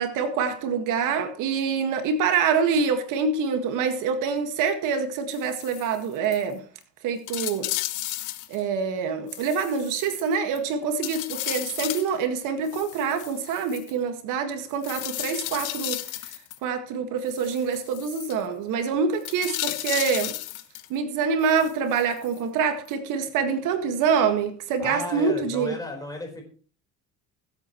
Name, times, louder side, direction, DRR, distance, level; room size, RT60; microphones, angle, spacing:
voice 1, 0.0-6.6 7.0-7.7 8.5-16.3 16.6-20.4 20.9-25.7, right 6 dB, 70° right, 1.8 m, -26 dB
sound 1, 5.3-6.0 6.3-6.4 6.8-6.9 7.3-8.6 9.3-10.6 11.0-12.1 12.7-13.9 14.8-16.6 17.3-18.3 19.2-20.9 21.4-22.4 22.9-23.0, left 15 dB, 70° left, 1.0 m, -34 dB
voice 2, 24.8-26.4, left 1 dB, 10° left, 4.3 m, -34 dB
21.5 x 8.4 x 3.1 m
cardioid pair, 140°, 32 cm